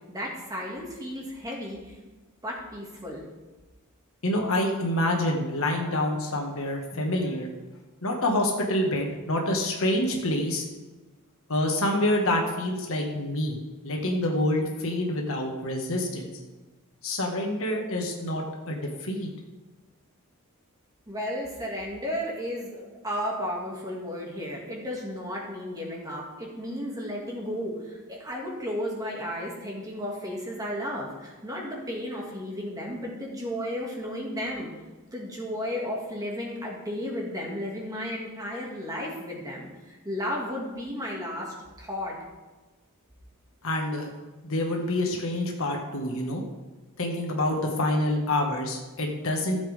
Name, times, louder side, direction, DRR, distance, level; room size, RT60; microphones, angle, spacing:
voice 1, 0.1-1.9 2.4-3.2 21.1-34.7 35.1-42.2, equal, 15° right, -2 dB, 2.3 m, -34 dB
voice 2, 4.2-7.5 8.0-10.7 11.5-13.6 13.8-16.3 17.0-19.3 43.6-44.1 44.4-46.4 47.0-49.6, left 1 dB, 65° left, 1 dB, 1.8 m, -27 dB
14.5 x 7.3 x 3.6 m, 1.2 s
head